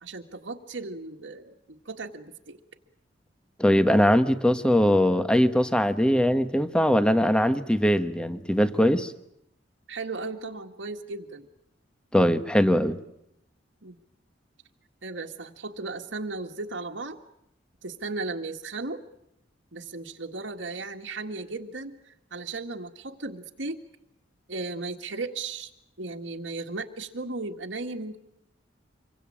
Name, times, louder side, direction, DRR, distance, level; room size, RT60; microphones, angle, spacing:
voice 1, 0.0-2.6 9.9-11.5 13.0-13.1 13.8-14.0 15.0-17.2 17.8-19.0 19.7-23.8 24.5-25.7 26.0-28.2, right 3 dB, 75° right, 1 dB, 1.8 m, -36 dB
voice 2, 3.6-9.1 12.1-13.0, equal, 5° left, 10 dB, 1.3 m, -21 dB
26.5 x 23.5 x 8.7 m, 0.78 s
head